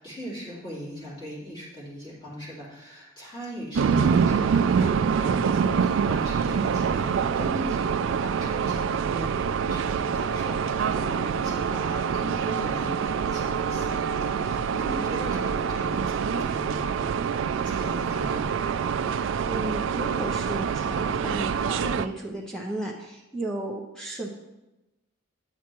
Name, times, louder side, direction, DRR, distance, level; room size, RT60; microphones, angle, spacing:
voice 1, 0.0-18.4, equal, 20° left, -8 dB, 3.3 m, -40 dB
sound 1, 3.8-22.1, right 6 dB, 60° right, 0.3 m, -25 dB
voice 2, 15.1-15.7 19.4-24.3, right 1 dB, 5° left, -2 dB, 0.7 m, -34 dB
9.4 x 8.3 x 3.0 m, 0.99 s
head